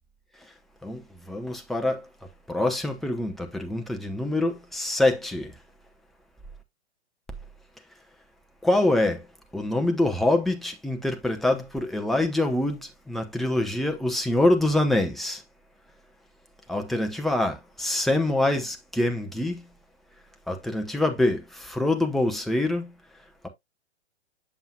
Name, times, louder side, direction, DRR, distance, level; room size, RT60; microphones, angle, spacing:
voice 1, 1.3-2.0 2.5-5.5 8.6-9.2 9.5-15.4 16.7-19.6 20.5-22.9, left 1 dB, ahead, 0.6 m, -25 dB
7.2 x 7.2 x 2.2 m
figure-of-eight pair, 120°, 33 cm